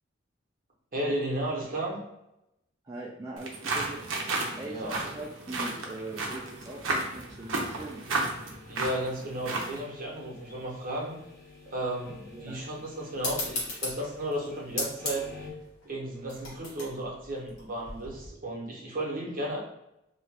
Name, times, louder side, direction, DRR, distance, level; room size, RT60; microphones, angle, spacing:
voice 1, 0.9-2.0 4.4-5.0 8.7-11.2 11.7-15.3 15.8-19.6, right 1 dB, 45° right, -2 dB, 0.8 m, -34 dB
voice 2, 2.8-4.0 4.6-8.0 12.3-12.6, right 2 dB, 20° right, -4 dB, 0.3 m, -41 dB
sound 1, 3.4-9.8, right 2 dB, 75° right, 0.6 m, -33 dB
sound 2, 4.1-15.5, left 3 dB, 15° left, 0.7 m, -53 dB
sound 3, 13.2-18.3, left 2 dB, 80° left, 1.2 m, -37 dB
2.7 x 2.4 x 3.1 m, 0.86 s
head